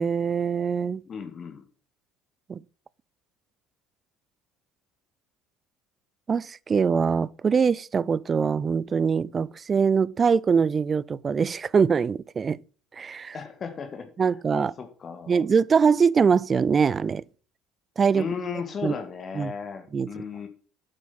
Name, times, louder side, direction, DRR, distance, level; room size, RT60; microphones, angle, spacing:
voice 1, 0.0-1.0 2.5-2.6 6.3-12.6 12.9-13.3 14.2-14.7 15.3-17.2 18.0-18.3 18.8-18.9 19.4-19.5 19.9-20.1, right 6 dB, 30° right, 0.4 m, -23 dB
voice 2, 1.0-1.7 13.3-15.4 18.1-20.5, left 6 dB, 35° left, 1.8 m, -35 dB
8.9 x 8.2 x 5.4 m
figure-of-eight pair, 60°, 0 cm